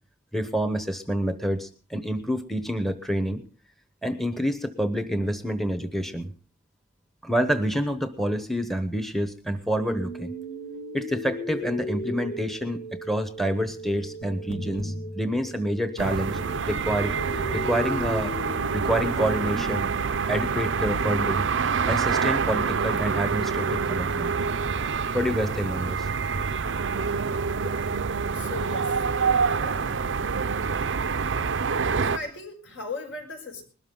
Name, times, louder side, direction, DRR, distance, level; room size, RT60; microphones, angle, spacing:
voice 1, 0.3-3.4 4.0-6.3 7.2-10.3 10.9-16.4 16.6-17.2 17.5-18.3 18.7-19.9 20.3-21.5 21.9-24.3 25.1-26.1, equal, ahead, 9 dB, 0.9 m, -28 dB
sound 1, 9.8-19.8, equal, 85° left, 2.2 m, -36 dB
sound 2, 16.0-32.2, right 5 dB, 65° right, 0.6 m, -26 dB
voice 2, 28.3-28.9 29.2-29.9 32.0-33.6, left 3 dB, 70° left, 3 dB, 5.6 m, -38 dB
20.5 x 13.0 x 3.8 m, 0.40 s
head